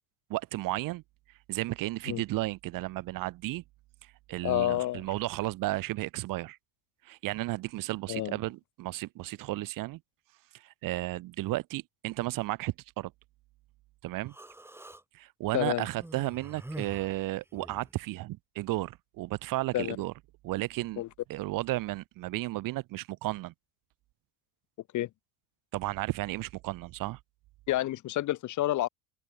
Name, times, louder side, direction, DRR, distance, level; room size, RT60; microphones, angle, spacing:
voice 1, 0.3-1.0 1.5-3.6 4.0-6.6 7.0-10.0 10.5-13.1 14.0-14.3 15.1-20.1 20.4-21.0 21.3-23.5 25.7-27.2, right 18 dB, 55° right, 1.3 m, -33 dB
voice 2, 4.4-5.0 8.1-8.4 15.5-15.9 19.7-20.0 21.0-21.1 24.9-25.1 27.7-28.9, left 15 dB, 50° left, 1.4 m, -29 dB
Human voice, 14.3-15.0 15.9-17.9, right 1 dB, 5° right, 6.6 m, -45 dB
open air
cardioid pair, 130°, 39 cm